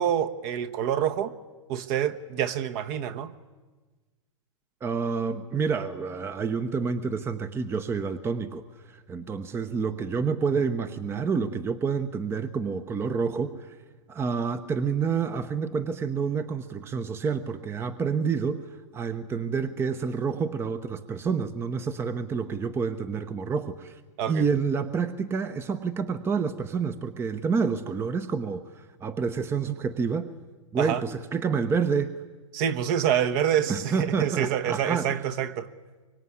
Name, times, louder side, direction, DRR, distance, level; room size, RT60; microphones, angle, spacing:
voice 1, 0.0-1.3 1.7-3.3 24.2-24.4 30.8-31.0 32.5-35.7, right 9 dB, 40° right, 1.3 m, -27 dB
voice 2, 4.8-13.8 14.1-18.7 18.9-24.0 24.3-30.3 30.7-32.1 33.7-35.2, right 5 dB, 15° right, 0.9 m, -28 dB
24.0 x 23.5 x 9.7 m
hypercardioid pair, 135°, 17 cm